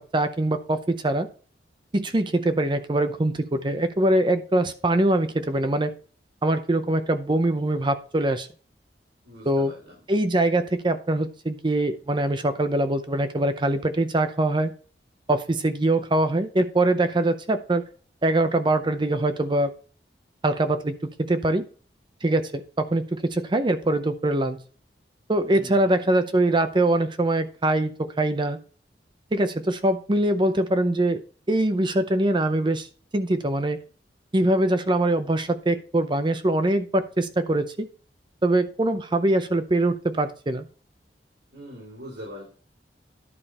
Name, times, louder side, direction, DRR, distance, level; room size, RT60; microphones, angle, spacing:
voice 1, 0.1-1.3 1.9-5.9 6.4-8.5 9.4-9.7 10.1-14.7 15.3-17.8 18.2-19.7 20.4-21.0 21.3-21.6 22.2-24.6 25.3-28.6 29.3-31.2 31.5-32.9 33.1-33.8 34.3-37.9 38.4-40.7, right 1 dB, 25° right, 9 dB, 0.6 m, -23 dB
voice 2, 9.2-10.0 25.5-26.1 41.5-42.4, equal, 80° right, -6 dB, 4.5 m, -42 dB
11.0 x 5.1 x 4.2 m, 0.40 s
head